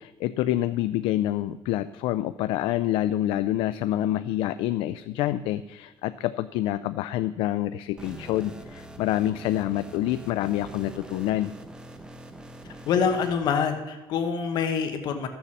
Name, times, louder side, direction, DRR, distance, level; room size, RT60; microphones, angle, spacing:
voice 1, 0.0-11.5, left 13 dB, 85° left, 12 dB, 0.4 m, -27 dB
sound 1, 8.0-13.3, right 1 dB, 10° right, 0.9 m, -43 dB
voice 2, 12.6-15.3, left 6 dB, 55° left, 7 dB, 1.0 m, -26 dB
13.5 x 7.0 x 7.2 m, 1.1 s
cardioid pair, 175°, 9 cm